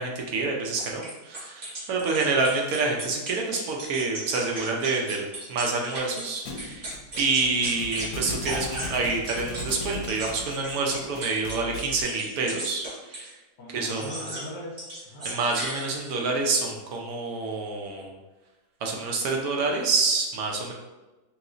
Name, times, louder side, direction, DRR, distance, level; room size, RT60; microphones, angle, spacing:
voice 1, 0.0-5.2 5.5-6.9 7.2-13.3 13.7-14.2 15.2-18.1 18.8-20.7, right 3 dB, 70° right, 0 dB, 1.0 m, -27 dB
sound 1, 0.8-6.3 6.6-8.1 8.4-13.3 13.9-14.5 14.8-16.2, right 1 dB, 40° right, 0.7 m, -36 dB
Thump thud, 6.5-12.0, left 2 dB, 70° left, 0.9 m, -38 dB
voice 2, 13.6-15.2, equal, 35° left, -4 dB, 0.8 m, -40 dB
3.0 x 3.0 x 2.4 m, 1.1 s
omnidirectional pair, 1.8 m